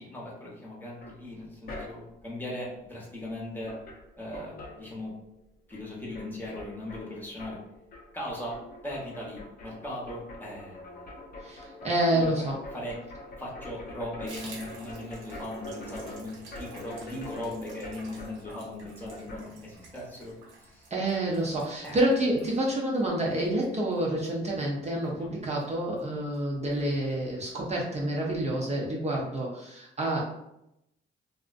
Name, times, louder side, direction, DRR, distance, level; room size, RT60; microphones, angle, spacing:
voice 1, 0.0-3.7 4.2-5.1 5.7-7.6 8.1-8.6 8.8-11.2 12.1-12.5 12.7-13.0 13.4-20.9 21.8-22.0 25.2-25.3, left 1 dB, 10° left, -5 dB, 0.8 m, -39 dB
sound 1, 1.0-2.3 3.3-3.4 3.6-5.4 5.7-19.5, left 1 dB, 50° left, 0.6 m, -45 dB
voice 2, 11.4-12.6 20.9-30.2, right 1 dB, 35° right, -3 dB, 0.6 m, -28 dB
Water tap faucet / Bathtub (filling or washing), 14.3-25.2 25.5-25.7 26.0-26.1 26.3-26.8 27.1-27.2 27.5-27.6, right 2 dB, 80° right, 0.8 m, -50 dB
2.4 x 2.1 x 2.4 m, 0.83 s
cardioid pair, 90°, 20 cm